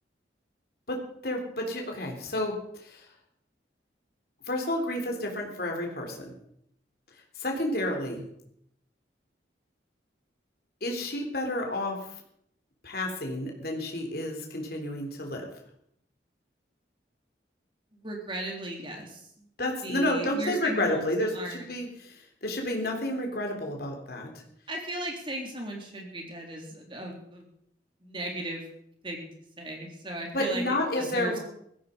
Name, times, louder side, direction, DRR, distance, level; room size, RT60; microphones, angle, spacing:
voice 1, 0.9-3.1 4.5-6.3 7.4-8.3 10.8-12.0 12.8-15.5 19.6-24.3 30.3-31.4, left 1 dB, 55° left, 2 dB, 3.6 m, -30 dB
voice 2, 17.9-19.5 19.8-21.7 24.7-27.5 28.0-28.6 29.0-29.3 29.6-30.6 31.0-31.4, right 1 dB, 25° right, 1 dB, 3.8 m, -36 dB
16.5 x 15.0 x 5.3 m, 0.72 s
head